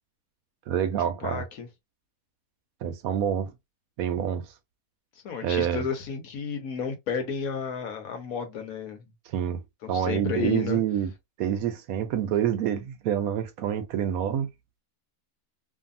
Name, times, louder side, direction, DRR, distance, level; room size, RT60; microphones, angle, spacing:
voice 1, 0.7-1.4 2.8-3.5 4.0-4.5 5.4-5.9 9.3-9.6 9.9-11.1 11.4-14.5, right 9 dB, 70° right, 1.0 m, -27 dB
voice 2, 1.2-1.7 5.2-9.0 9.8-10.8, left 6 dB, 65° left, 1.2 m, -32 dB
2.7 x 2.6 x 2.5 m
omnidirectional pair, 1.7 m